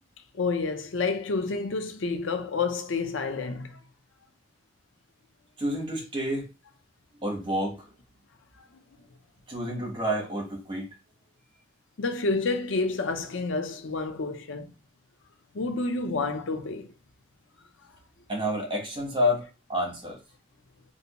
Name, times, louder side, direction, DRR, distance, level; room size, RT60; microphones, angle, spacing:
voice 1, 0.3-3.7 12.0-14.7 15.5-16.9, left 3 dB, 85° left, 0.6 m, -29 dB
voice 2, 5.6-6.5 7.2-7.9 9.5-10.9 18.3-19.4 19.7-20.2, equal, 25° right, 1.1 m, -29 dB
3.4 x 2.7 x 2.9 m
head